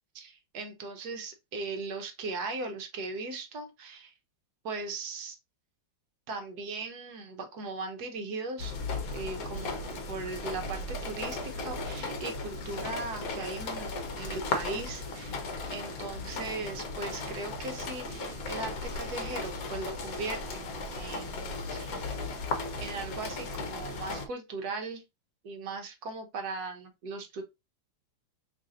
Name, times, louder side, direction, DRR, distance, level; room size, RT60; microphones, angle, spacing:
voice 1, 0.1-4.1 4.6-5.4 6.3-8.7 9.1-9.8 10.1-15.4 15.7-21.9 22.8-25.0 25.4-27.4, right 3 dB, 65° right, 1.1 m, -38 dB
sound 1, 8.6-24.3, left 3 dB, 60° left, 1.0 m, -36 dB
3.2 x 2.6 x 3.7 m
omnidirectional pair, 2.1 m